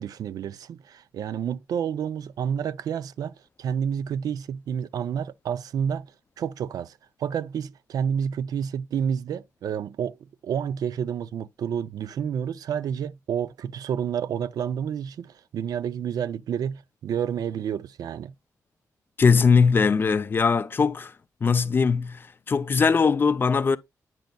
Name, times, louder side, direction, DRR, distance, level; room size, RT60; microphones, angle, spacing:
voice 1, 0.0-6.1 6.4-10.2 10.4-18.3, right 8 dB, 80° right, 0.4 m, -29 dB
voice 2, 19.2-21.1 21.4-23.8, left 5 dB, 35° left, 0.4 m, -20 dB
9.1 x 5.2 x 2.2 m
wide cardioid pair, 135°, 6 cm